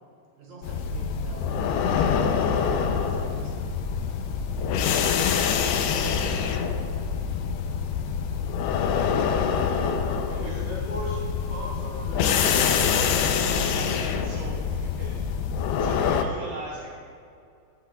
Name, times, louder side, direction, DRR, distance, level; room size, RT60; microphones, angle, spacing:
voice 1, 0.4-3.5, right 2 dB, 45° right, -5 dB, 3.7 m, -45 dB
sound 1, 0.6-16.3, left 6 dB, 90° left, 2.3 m, -25 dB
voice 2, 9.2-13.3, left 1 dB, 60° left, -8 dB, 2.9 m, -39 dB
voice 3, 10.3-10.6 13.7-15.2 15.8-16.9, right 2 dB, 65° right, -6 dB, 3.1 m, -40 dB
18.5 x 7.9 x 2.4 m, 2.4 s
omnidirectional pair, 5.4 m